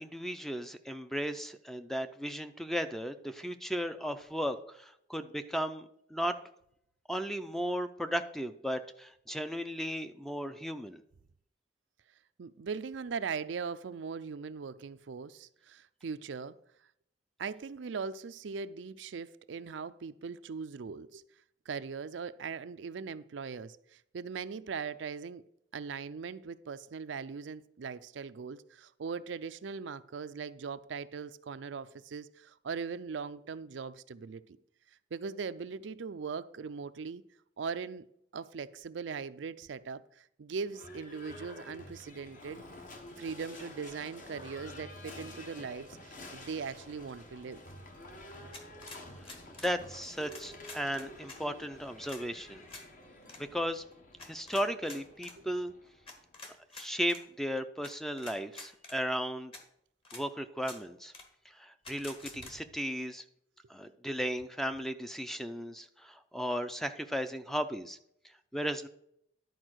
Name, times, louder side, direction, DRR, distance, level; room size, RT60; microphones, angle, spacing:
voice 1, 0.0-6.4 7.1-11.0 49.5-52.6 53.4-53.8 54.2-55.7 56.7-59.5 60.1-61.1 61.5-63.2 63.7-68.0 68.5-68.9, equal, ahead, 0.5 m, -35 dB
voice 2, 12.4-16.6 17.4-21.2 21.7-25.4 25.7-34.4 35.1-37.2 37.6-38.0 38.3-42.6 43.2-47.6, right 5 dB, 75° right, 0.4 m, -40 dB
Livestock farm animals working animals / Bell, 40.7-56.5, left 1 dB, 45° left, 1.3 m, -50 dB
sound 1, 48.5-49.8 50.3-51.4 52.0-52.2 52.7-52.9 53.2-53.4 54.2-55.4 56.1-57.2 57.8-57.9 58.2-59.0 59.5-59.6 60.0-60.2 60.6-60.8 61.1-61.3 61.8-62.5, left 3 dB, 30° left, 1.4 m, -48 dB
11.0 x 4.7 x 6.3 m
head